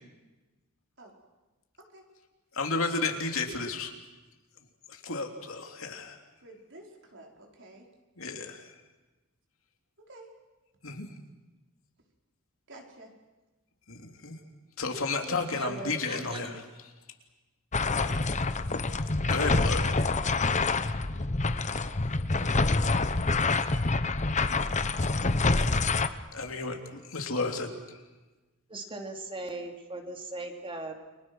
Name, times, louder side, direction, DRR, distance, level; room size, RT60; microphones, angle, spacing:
voice 1, 2.5-3.9 4.9-6.2 8.2-8.7 10.8-11.1 13.9-14.3 14.8-16.6 19.3-19.9 26.3-27.7, left 3 dB, 70° left, 4 dB, 3.2 m, -32 dB
voice 2, 6.4-7.9 10.0-10.3 12.7-13.1 19.2-19.7 21.6-22.1, right 1 dB, 60° right, 1 dB, 5.2 m, -51 dB
voice 3, 14.9-16.6 28.7-30.9, right 2 dB, 25° right, 4 dB, 3.1 m, -40 dB
sound 1, 17.7-26.1, left 3 dB, 35° left, 1.0 m, -26 dB
30.0 x 24.5 x 6.3 m, 1.1 s
head